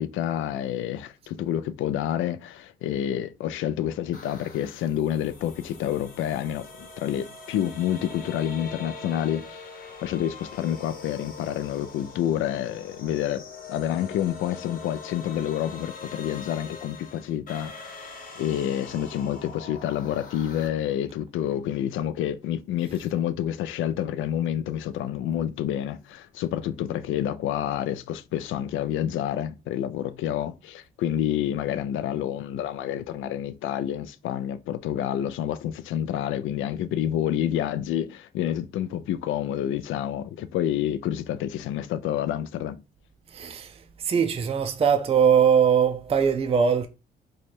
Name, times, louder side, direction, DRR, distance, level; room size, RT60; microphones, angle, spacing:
voice 1, 0.0-9.6 10.0-13.4 13.7-42.8, left 11 dB, 80° left, 0.4 m, -28 dB
sound 1, 4.1-20.7, left 4 dB, 45° left, 1.1 m, -43 dB
voice 2, 43.3-46.9, right 7 dB, 30° right, 0.4 m, -21 dB
3.1 x 2.3 x 4.2 m
cardioid pair, 90°, 20 cm